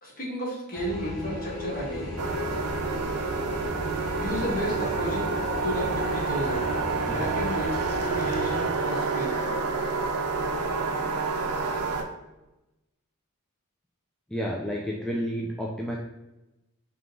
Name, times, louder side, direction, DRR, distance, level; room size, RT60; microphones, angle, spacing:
voice 1, 0.0-2.2 4.2-5.3 5.6-6.6 7.1-9.3, equal, 40° left, -2 dB, 1.1 m, -32 dB
sound 1, 0.7-8.6, left 1 dB, 85° left, 1.2 m, -36 dB
sound 2, 2.2-12.0, right 4 dB, 85° right, 0.6 m, -28 dB
voice 2, 14.3-16.0, equal, 5° left, -3 dB, 0.3 m, -30 dB
3.6 x 2.8 x 3.8 m, 0.96 s
head